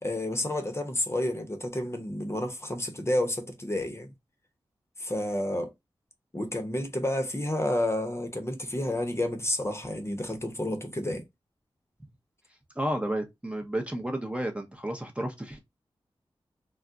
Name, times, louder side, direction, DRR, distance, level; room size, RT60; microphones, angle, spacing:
voice 1, 0.0-4.1 5.0-5.7 6.3-11.2, left 1 dB, 25° left, 0.8 m, -30 dB
voice 2, 12.8-15.6, right 1 dB, 10° right, 0.7 m, -32 dB
2.3 x 2.1 x 3.7 m
cardioid pair, 45°, 10 cm